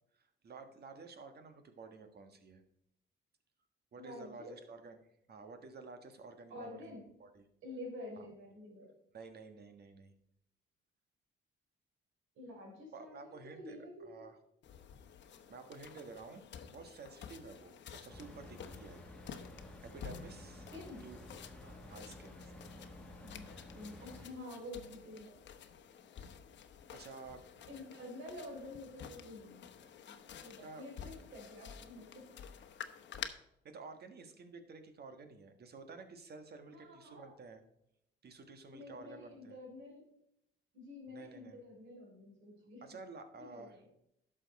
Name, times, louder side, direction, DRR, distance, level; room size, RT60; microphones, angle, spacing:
voice 1, 0.2-2.6 3.9-5.0 5.3-7.4 8.2-8.3 9.1-10.1 12.9-14.4 15.5-19.0 19.9-20.7 21.0-21.2 21.6-22.7 26.9-27.4 30.6-30.8 33.2-33.3 33.6-37.6 38.2-39.6 41.1-41.6 42.8-43.8, right 4 dB, 55° right, 8 dB, 1.5 m, -52 dB
voice 2, 4.0-4.6 6.5-7.1 7.6-8.9 12.4-14.3 20.7-21.0 23.2-25.4 27.7-29.7 30.1-32.3 36.7-37.3 38.7-40.1 40.7-43.0 43.4-43.9, left 1 dB, 90° right, 0 dB, 3.7 m, -49 dB
sound 1, 14.6-33.3, left 8 dB, 65° left, 0.9 m, -51 dB
sound 2, 18.1-24.3, left 1 dB, 5° left, 1.7 m, -52 dB
11.0 x 6.4 x 4.1 m, 0.79 s
cardioid pair, 90°, 20 cm